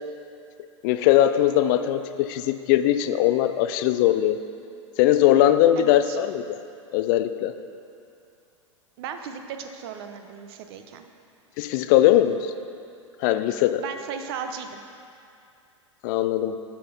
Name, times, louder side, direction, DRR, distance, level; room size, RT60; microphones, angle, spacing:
voice 1, 0.8-2.0 2.3-4.4 5.0-6.4 6.9-7.5 11.6-12.5 13.2-13.8 16.0-16.6, left 12 dB, 40° left, 10 dB, 0.4 m, -20 dB
voice 2, 5.8-6.2 9.0-11.0 13.8-14.8, right 7 dB, 50° right, 7 dB, 0.7 m, -36 dB
8.7 x 5.8 x 5.3 m, 2.5 s
figure-of-eight pair, 95°, 16 cm